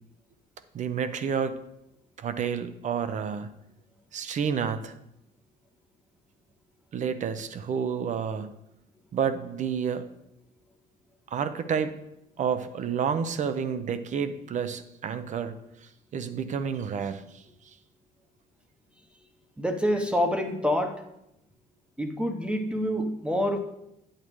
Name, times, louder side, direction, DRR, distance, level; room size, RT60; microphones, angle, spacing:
voice 1, 0.7-1.6 2.2-3.5 4.1-5.0 6.9-8.5 9.1-10.1 11.3-12.0 12.4-17.4, right 7 dB, 45° right, 11 dB, 0.7 m, -30 dB
voice 2, 19.6-21.0 22.0-23.6, equal, 5° right, 6 dB, 0.9 m, -26 dB
8.9 x 8.5 x 3.1 m, 0.85 s
cardioid pair, 110°, 17 cm